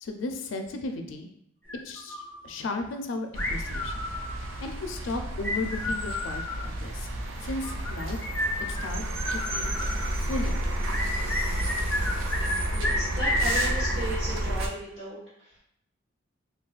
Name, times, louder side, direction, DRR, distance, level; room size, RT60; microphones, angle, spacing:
voice 1, 0.0-1.3 1.8-4.1 4.6-7.1 7.4-8.3 8.7-9.0 9.3-9.8 10.1-10.6, left 2 dB, 80° left, 5 dB, 0.4 m, -35 dB
sound 1, 1.7-2.4 3.4-4.5 5.4-6.7 7.6-10.1 10.9-12.6 12.8-14.0, left 1 dB, 10° left, 0.4 m, -31 dB
sound 2, 3.3-14.7, right 1 dB, 85° right, 0.4 m, -31 dB
voice 2, 12.7-15.6, right 1 dB, 30° right, -13 dB, 1.0 m, -36 dB
3.8 x 2.3 x 2.4 m, 0.72 s
head